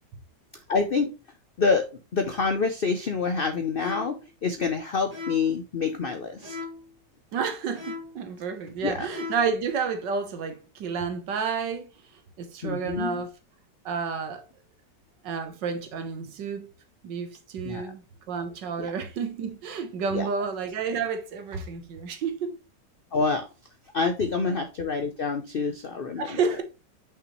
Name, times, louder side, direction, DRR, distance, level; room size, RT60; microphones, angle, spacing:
voice 1, 0.7-1.1 1.6-1.9 2.1-6.6 8.8-9.1 12.6-13.2 17.6-17.9 18.8-18.9 20.1-20.3 23.1-23.4 23.9-26.4, left 4 dB, 70° left, 0.5 m, -27 dB
sound 1, 3.8-4.3 5.1-5.6 6.4-6.9 7.7-8.2 9.0-9.6, left 4 dB, 20° right, 2.3 m, -38 dB
voice 2, 7.3-11.9 12.4-13.3 13.8-14.4 15.2-16.7 17.0-22.6 24.5-24.6 26.2-26.6, right 5 dB, 90° right, 1.7 m, -30 dB
5.8 x 5.7 x 3.0 m
omnidirectional pair, 1.9 m